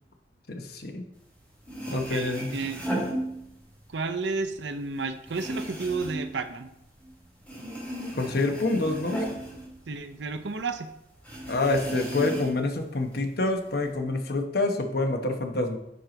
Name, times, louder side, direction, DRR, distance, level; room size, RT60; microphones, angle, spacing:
voice 1, 0.5-1.1 1.9-2.5 8.1-9.3 11.5-15.8, left 2 dB, 60° left, 5 dB, 0.9 m, -27 dB
sound 1, 1.4-1.5 1.6-3.9 4.2-7.1 7.4-10.4 10.7-10.8 11.2-12.7 13.1-13.9, right 1 dB, 10° left, 2.9 m, -35 dB
voice 2, 1.9-2.8 3.9-6.7 9.9-10.9, right 4 dB, 75° right, 9 dB, 0.7 m, -32 dB
10.0 x 4.7 x 3.9 m, 0.83 s
head